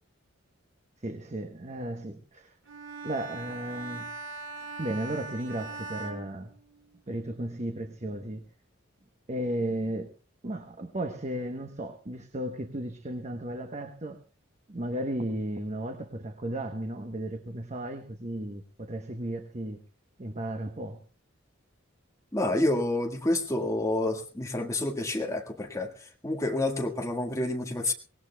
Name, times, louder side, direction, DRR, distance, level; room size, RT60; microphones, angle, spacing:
voice 1, 1.0-2.6 3.0-4.1 4.8-6.5 7.1-8.4 9.3-10.1 10.4-14.2 14.7-19.8 20.2-21.0, right 1 dB, 35° right, 5 dB, 1.0 m, -34 dB
Bowed string instrument, 2.6-7.1, right 3 dB, 65° right, 2.4 m, -41 dB
voice 2, 22.3-25.9 26.2-27.9, left 1 dB, 15° left, 2 dB, 1.7 m, -28 dB
24.0 x 18.5 x 2.3 m, 0.36 s
head